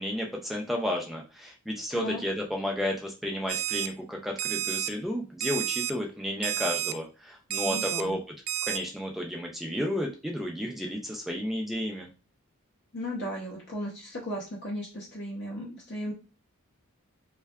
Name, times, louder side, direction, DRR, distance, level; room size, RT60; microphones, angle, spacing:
voice 1, 0.0-8.2 8.6-12.1, equal, ahead, 0 dB, 0.4 m, -32 dB
Alarm, 3.5-3.9 4.4-4.9 5.4-5.9 6.4-6.9 7.5-8.0 8.5-8.8, right 13 dB, 75° right, 0.3 m, -30 dB
voice 2, 7.7-8.2 12.9-16.1, equal, 50° left, -4 dB, 0.6 m, -36 dB
2.6 x 2.2 x 2.2 m, 0.33 s
head